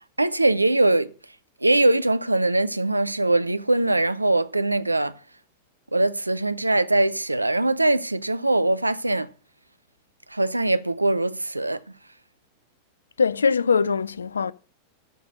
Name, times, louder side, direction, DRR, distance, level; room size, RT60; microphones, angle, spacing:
voice 1, 0.2-1.1 1.6-5.2 5.9-9.3 10.3-12.0, right 2 dB, 85° right, 0.5 m, -22 dB
voice 2, 13.2-14.5, left 5 dB, 75° left, 0.4 m, -22 dB
13.0 x 5.1 x 6.3 m
figure-of-eight pair, 90°, 0 cm